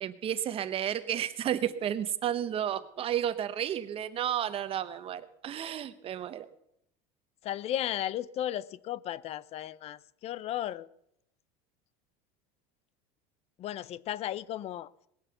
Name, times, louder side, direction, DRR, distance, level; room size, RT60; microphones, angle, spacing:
voice 1, 0.0-6.5, right 10 dB, 35° right, 0.9 m, -32 dB
voice 2, 7.4-10.9 13.6-14.9, left 12 dB, 40° left, 0.5 m, -35 dB
19.5 x 7.4 x 6.9 m
supercardioid pair, 135°, 17 cm